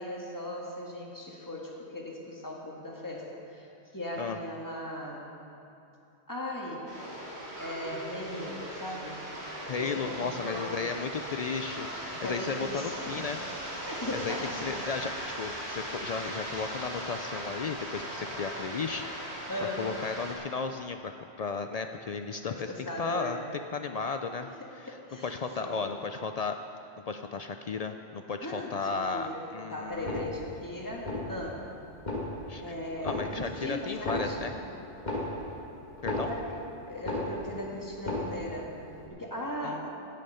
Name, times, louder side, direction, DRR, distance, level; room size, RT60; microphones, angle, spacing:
voice 1, 0.0-3.7 3.9-5.4 6.3-6.9 7.6-9.3 9.8-11.2 12.2-13.3 13.8-14.6 19.5-19.9 22.4-23.5 24.6-25.9 28.4-31.7 32.6-34.5 36.3-36.6 36.9-38.8 39.1-39.9, left 1 dB, 15° left, -2 dB, 1.7 m, -38 dB
sound 1, 6.9-20.3, right 1 dB, 65° right, 2.6 m, -39 dB
voice 2, 9.7-13.4 14.1-14.3 14.6-19.4 19.8-21.1 21.4-22.7 23.0-23.4 23.7-25.0 25.2-26.6 27.1-30.3 32.5-32.7 33.0-34.5 36.0-36.3 39.6-39.9, left 5 dB, 70° left, 7 dB, 0.3 m, -34 dB
sound 2, 29.9-30.6 31.0-31.6 31.9-32.6 33.0-33.6 33.9-36.7 37.0-37.6 37.9-38.6 39.0-39.1, left 1 dB, 40° left, 1.8 m, -35 dB
17.0 x 6.6 x 5.6 m, 2.9 s
omnidirectional pair, 1.2 m